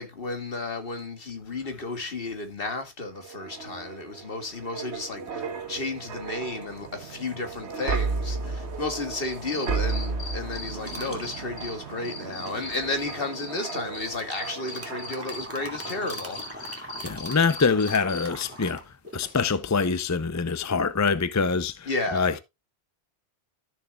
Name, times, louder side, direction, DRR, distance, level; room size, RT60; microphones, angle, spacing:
voice 1, 0.0-16.8 19.3-19.4 21.9-22.3, left 2 dB, 55° left, 2.0 m, -33 dB
sound 1, 3.2-15.5 15.8-16.1, right 4 dB, 80° right, 1.5 m, -34 dB
Cricket, 9.0-11.7 12.0-15.4 15.8-18.2, left 4 dB, 80° left, 6.6 m, -39 dB
sound 2, 10.8-11.3 12.5-13.2 14.0-19.3, right 1 dB, 10° right, 2.2 m, -41 dB
voice 2, 16.6-18.8 19.1-22.4, left 5 dB, 25° left, 0.4 m, -25 dB
13.5 x 6.7 x 2.3 m
omnidirectional pair, 1.1 m